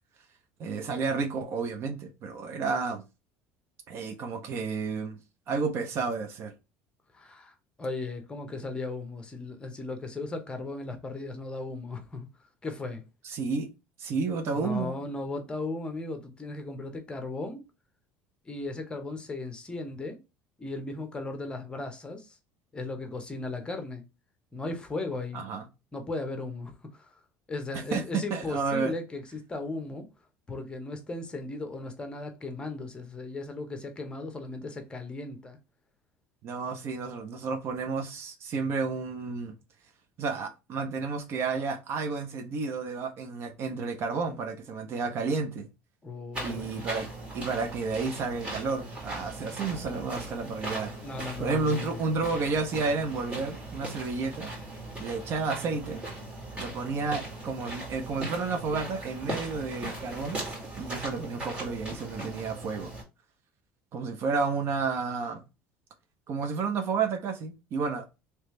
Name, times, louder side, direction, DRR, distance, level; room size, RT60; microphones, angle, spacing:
voice 1, 0.6-3.0 3.9-5.2 5.5-6.5 13.2-13.7 14.0-15.0 25.3-25.7 27.7-28.0 28.3-28.9 36.4-39.5 40.2-45.7 46.4-47.1 47.3-50.9 51.4-54.5 55.0-56.0 56.6-60.5 60.8-62.9 63.9-65.4 66.3-68.0, right 4 dB, 50° right, 0.9 m, -31 dB
voice 2, 7.1-12.3 12.6-13.0 14.5-17.6 18.4-20.2 20.6-22.4 22.7-24.0 24.5-25.4 25.9-27.1 27.5-30.1 30.5-35.6 46.0-46.7 51.0-52.0, left 2 dB, 20° left, 1.0 m, -36 dB
sound 1, 46.3-63.0, right 1 dB, 25° right, 2.4 m, -39 dB
3.2 x 3.2 x 3.2 m
supercardioid pair, 115°, 5 cm